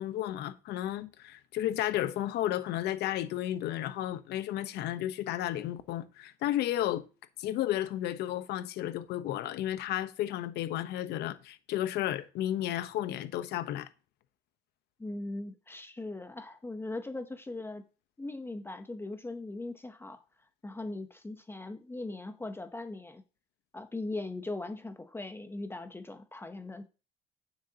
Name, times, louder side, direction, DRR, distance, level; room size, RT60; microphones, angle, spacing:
voice 1, 0.0-7.1 7.4-13.9, left 13 dB, 80° left, 1.0 m, -33 dB
voice 2, 15.0-17.8 18.2-20.2 20.6-23.2 23.7-26.9, left 2 dB, 15° left, 0.8 m, -39 dB
9.4 x 7.7 x 2.9 m
cardioid pair, 110°, 17 cm